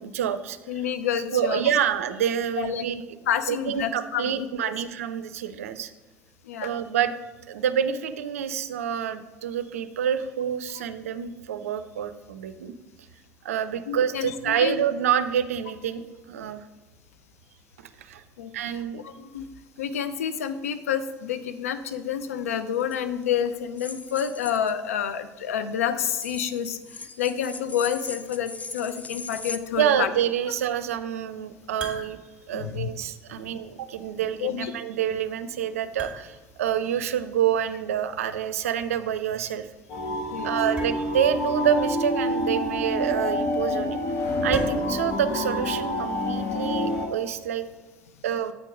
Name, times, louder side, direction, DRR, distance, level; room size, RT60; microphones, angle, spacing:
voice 1, 0.0-0.6 1.3-3.0 3.5-5.9 6.6-7.2 7.5-12.7 13.4-16.7 17.8-18.2 18.5-19.0 29.8-32.2 32.5-39.7 40.4-44.0 44.4-47.7 48.2-48.5, right 9 dB, 80° right, 11 dB, 0.5 m, -27 dB
voice 2, 0.7-1.6 2.6-2.8 3.3-4.7 6.5-6.7 13.9-14.7 18.4-18.5 19.0-19.4 19.8-26.8 27.2-30.1 32.5-32.9 33.4-33.5 34.4-34.7 40.3-40.5, left 8 dB, 85° left, 10 dB, 0.5 m, -28 dB
sound 1, 22.8-23.0 23.8-24.7 26.1-29.6, left 4 dB, 20° left, 0.5 m, -39 dB
sound 2, 30.6-47.8, right 3 dB, 15° right, 2.7 m, -45 dB
sound 3, 39.9-47.1, left 1 dB, 65° left, 1.3 m, -27 dB
8.2 x 4.6 x 5.0 m, 1.3 s
hypercardioid pair, 70°, 8 cm